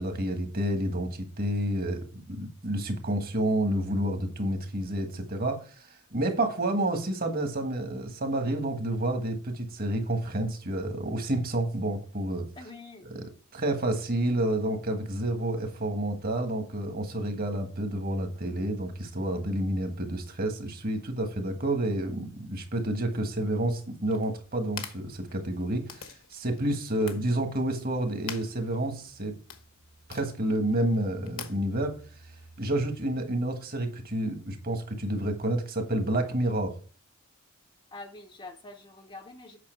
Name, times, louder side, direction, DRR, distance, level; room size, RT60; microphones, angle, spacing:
voice 1, 0.0-12.5 13.1-13.2 13.5-29.3 30.1-32.0 32.6-36.7, right 1 dB, 40° right, 1.6 m, -29 dB
voice 2, 12.6-13.1 37.9-39.6, left 2 dB, 25° left, 0.7 m, -45 dB
sound 1, 24.0-33.0, left 7 dB, 65° left, 1.1 m, -47 dB
8.5 x 5.9 x 4.5 m
head